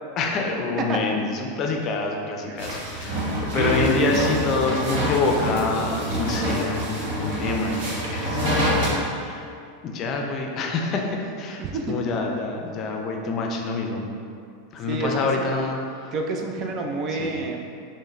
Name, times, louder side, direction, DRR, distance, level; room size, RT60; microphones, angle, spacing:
voice 1, 0.2-9.5 9.8-14.1 14.7-16.1 17.1-17.3, left 3 dB, 40° left, 2 dB, 0.5 m, -27 dB
sound 1, 2.6-8.9, equal, 70° right, 1.1 m, -26 dB
voice 2, 3.6-4.1 11.6-12.1 14.9-15.1 15.4-15.5 16.1-17.7, right 3 dB, 40° right, 2 dB, 0.4 m, -28 dB
6.2 x 2.2 x 2.4 m, 2.4 s
hypercardioid pair, 95°, 0 cm